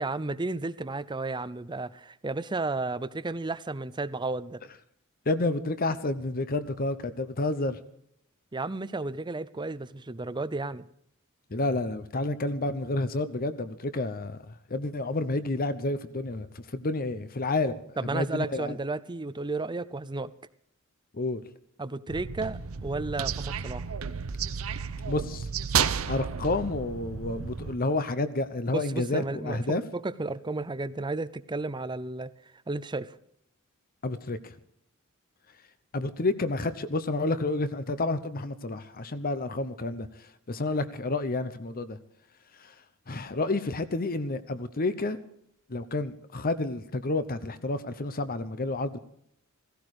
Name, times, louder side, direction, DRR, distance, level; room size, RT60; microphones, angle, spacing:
voice 1, 0.0-4.6 8.5-10.8 18.0-20.3 21.8-23.8 28.7-32.3 32.7-33.2, right 3 dB, 20° right, 0.6 m, -33 dB
voice 2, 5.3-7.8 11.5-17.8 18.1-18.8 21.1-21.4 25.1-25.5 26.1-29.8 34.0-34.5 35.9-40.1 40.5-42.0 42.6-42.7 43.1-45.2 45.7-49.0, left 2 dB, 45° left, 0.9 m, -30 dB
sound 1, 22.1-27.8, right 7 dB, 80° right, 0.8 m, -32 dB
16.5 x 16.0 x 4.9 m
head